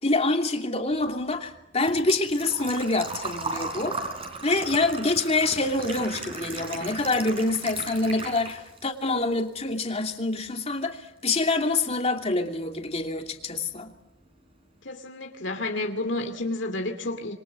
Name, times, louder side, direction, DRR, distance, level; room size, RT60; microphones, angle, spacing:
voice 1, 0.0-4.0 4.4-13.9, left 2 dB, 35° left, 2.8 m, -26 dB
Engine / Trickle dribble / Fill (with liquid), 0.9-8.9 9.2-10.2 10.5-10.6 12.5-12.6 12.7-13.1 13.5-13.6 13.8-13.9, right 3 dB, 30° right, 4.3 m, -36 dB
voice 2, 14.8-17.3, left 2 dB, 65° left, 2.6 m, -30 dB
27.5 x 23.5 x 7.7 m
head